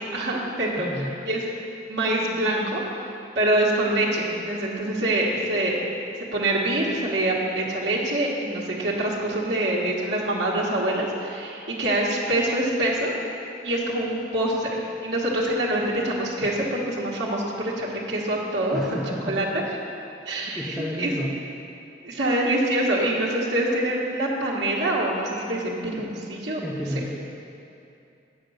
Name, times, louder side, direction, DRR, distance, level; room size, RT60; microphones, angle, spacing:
voice 1, 0.1-1.4 1.9-2.8 3.3-5.8 6.3-13.1 13.6-19.0 19.2-19.5 20.3-20.6 21.0-21.1 22.0-26.6, right 1 dB, 70° right, -6 dB, 1.3 m, -25 dB
voice 2, 0.8-1.1 18.7-19.4 20.2-21.3 26.6-27.2, equal, ahead, -5 dB, 0.6 m, -31 dB
8.2 x 5.0 x 6.4 m, 2.7 s
head